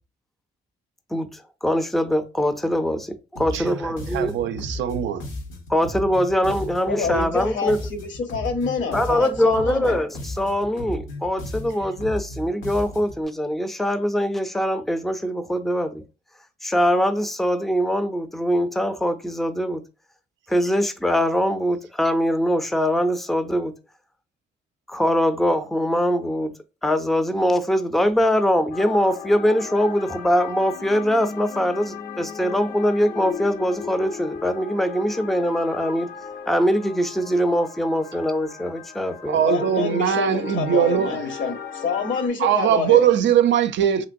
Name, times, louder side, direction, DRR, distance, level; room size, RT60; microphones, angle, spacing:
voice 1, 1.1-4.4 5.7-7.8 8.9-16.0 16.6-19.8 20.5-23.7 24.9-26.5 26.8-36.1 36.5-39.4, equal, ahead, 0.4 m, -22 dB
sound 1, 3.4-13.2, left 1 dB, 90° left, 1.0 m, -35 dB
voice 2, 3.5-5.2 39.3-41.1 42.4-44.1, right 10 dB, 65° right, 0.4 m, -21 dB
voice 3, 6.9-10.0 39.4-43.1, left 5 dB, 70° left, 1.0 m, -27 dB
sound 2, 28.7-42.3, left 6 dB, 50° left, 0.5 m, -36 dB
2.9 x 2.9 x 2.6 m
cardioid pair, 90°, 20 cm